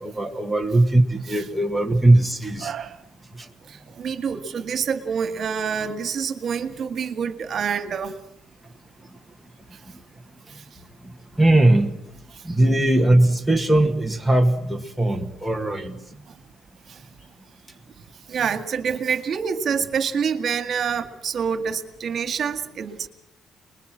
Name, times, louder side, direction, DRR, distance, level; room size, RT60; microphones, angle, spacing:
voice 1, 0.0-2.7 3.4-3.5 11.0-12.0 12.4-16.0, right 1 dB, ahead, 1 dB, 1.8 m, -19 dB
voice 2, 2.6-3.0 3.7-8.1 16.9-17.0 18.3-23.1, right 6 dB, 50° right, 9 dB, 2.0 m, -27 dB
29.0 x 21.5 x 7.5 m, 0.74 s
cardioid pair, 140°, 0 cm